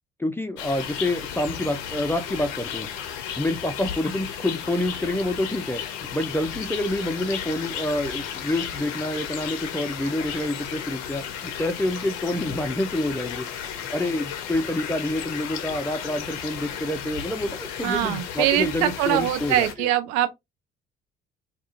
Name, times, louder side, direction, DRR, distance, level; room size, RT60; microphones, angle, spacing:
voice 1, 0.2-2.9 3.4-5.8 6.1-13.5 13.9-19.9, left 1 dB, 10° left, 0.4 m, -27 dB
sound 1, 0.6-19.7, left 8 dB, 65° left, 0.5 m, -34 dB
voice 2, 17.8-20.3, right 13 dB, 60° right, 0.5 m, -23 dB
2.3 x 2.3 x 2.7 m
figure-of-eight pair, 45°, 30 cm